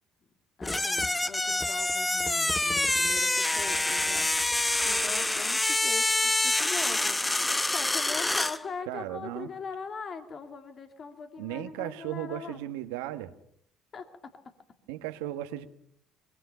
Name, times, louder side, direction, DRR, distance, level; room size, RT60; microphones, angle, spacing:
voice 1, 0.6-7.2 7.7-12.6 13.9-14.3, left 5 dB, 45° left, 6 dB, 2.7 m, -41 dB
sound 1, 0.6-8.6, left 2 dB, 15° left, 1.0 m, -26 dB
voice 2, 8.9-9.5 11.4-13.3 14.9-15.6, right 14 dB, 85° right, 8 dB, 1.5 m, -36 dB
23.5 x 22.0 x 5.8 m, 0.68 s
hypercardioid pair, 70°, 0 cm